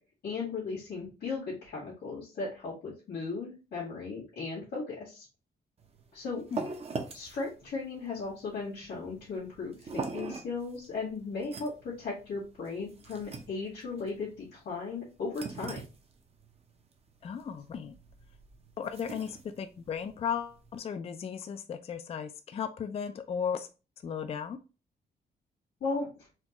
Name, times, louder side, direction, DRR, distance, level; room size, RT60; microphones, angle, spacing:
voice 1, 0.2-5.2 6.1-6.4 7.1-15.8 25.8-26.1, left 4 dB, 80° left, -8 dB, 1.9 m, -36 dB
sound 1, 5.8-20.8, right 4 dB, 35° right, 0.6 m, -43 dB
voice 2, 17.2-17.9 18.8-23.7 24.0-24.6, left 7 dB, 35° left, 9 dB, 0.3 m, -35 dB
4.3 x 2.3 x 2.9 m, 0.32 s
wide cardioid pair, 140°, 17 cm